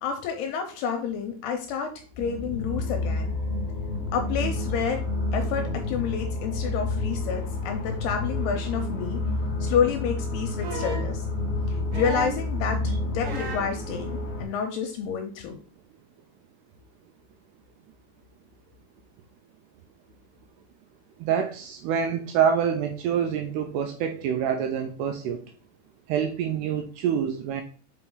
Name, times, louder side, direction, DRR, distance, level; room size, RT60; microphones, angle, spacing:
voice 1, 0.0-3.3 4.1-5.1 5.3-9.2 9.6-11.3 11.7-15.6, left 7 dB, 80° left, 5 dB, 2.5 m, -29 dB
sound 1, 2.1-14.4, left 2 dB, 45° left, 0.7 m, -29 dB
sound 2, 10.6-11.1 11.9-12.5 13.2-13.7 14.9-15.0, right 5 dB, 60° right, 2.5 m, -34 dB
voice 2, 21.2-25.4 26.1-27.6, right 8 dB, 85° right, 6 dB, 2.4 m, -26 dB
6.0 x 5.3 x 3.8 m, 0.39 s
omnidirectional pair, 5.2 m